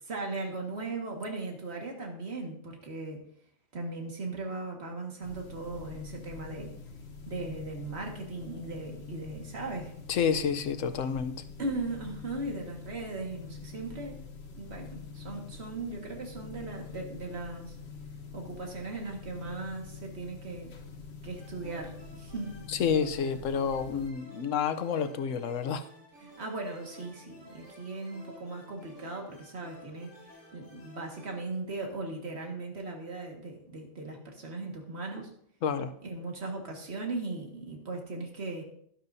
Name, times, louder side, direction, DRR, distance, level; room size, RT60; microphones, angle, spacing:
voice 1, 0.1-3.2 3.7-6.7 7.3-10.0 11.6-14.2 14.6-17.7 18.3-20.7 21.2-22.5 26.2-30.1 30.5-35.3 36.0-38.6, right 3 dB, 55° right, 1 dB, 2.1 m, -38 dB
sound 1, 5.2-24.1, left 5 dB, 60° left, 1.3 m, -46 dB
voice 2, 10.1-11.3 22.7-25.9 35.6-35.9, left 6 dB, 90° left, 11 dB, 1.1 m, -29 dB
sound 2, 21.4-31.5, equal, 15° right, 5.4 m, -53 dB
12.5 x 11.5 x 2.7 m, 0.67 s
omnidirectional pair, 1.3 m